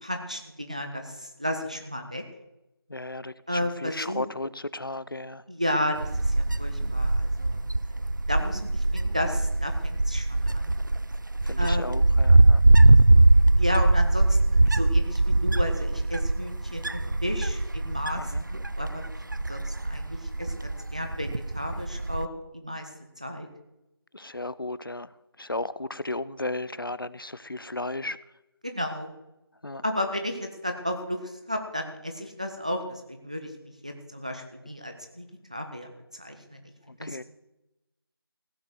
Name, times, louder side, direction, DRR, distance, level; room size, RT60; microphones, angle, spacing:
voice 1, 0.0-2.2 3.5-4.2 5.5-7.6 7.9-8.0 8.3-10.7 11.6-11.9 13.6-19.0 19.3-22.9 23.2-23.5 28.6-29.1 29.8-36.6 37.0-37.2, left 1 dB, 15° right, 5 dB, 0.7 m, -33 dB
voice 2, 2.9-5.4 11.4-12.6 18.2-18.4 24.1-25.1 25.4-28.2 29.6-29.8 37.0-37.2, left 2 dB, 60° left, 18 dB, 0.6 m, -34 dB
Wind, 6.0-22.3, right 2 dB, 50° right, 0.4 m, -22 dB
15.5 x 7.0 x 7.7 m, 0.94 s
figure-of-eight pair, 175°, 13 cm